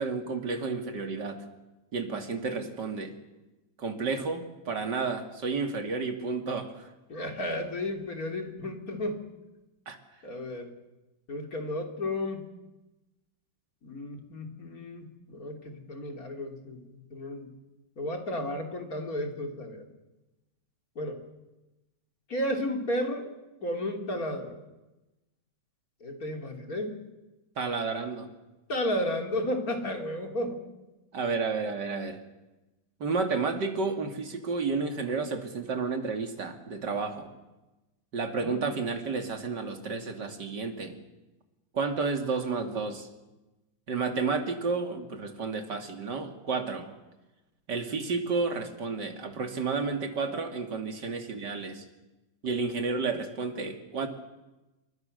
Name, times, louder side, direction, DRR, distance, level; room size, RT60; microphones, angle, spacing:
voice 1, 0.0-1.4 1.9-3.1 3.8-6.9 9.9-10.0 27.6-28.3 31.1-32.2 33.0-37.3 38.1-41.0 41.7-43.1 43.9-46.9 47.7-51.8 52.4-54.1, right 4 dB, 70° right, 5 dB, 3.1 m, -31 dB
voice 2, 7.1-9.2 10.2-10.7 11.3-12.4 13.8-16.8 17.1-17.5 18.0-19.8 21.0-21.2 22.3-23.3 23.6-24.6 26.0-27.0 28.7-30.6 38.4-38.7, left 1 dB, 50° left, 3 dB, 3.7 m, -33 dB
28.5 x 24.0 x 6.7 m, 1.0 s
omnidirectional pair, 1.9 m